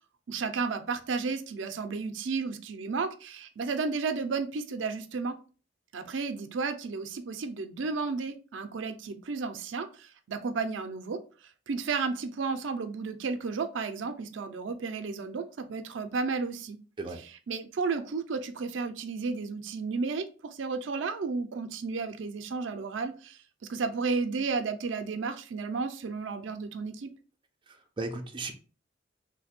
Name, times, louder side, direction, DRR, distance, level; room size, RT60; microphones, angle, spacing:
voice 1, 0.3-5.3 5.9-11.2 11.7-16.8 17.5-23.4 23.7-27.1, right 4 dB, 90° right, 0.5 m, -33 dB
voice 2, 27.7-28.5, right 3 dB, 25° right, 0.5 m, -36 dB
3.2 x 2.2 x 4.2 m
head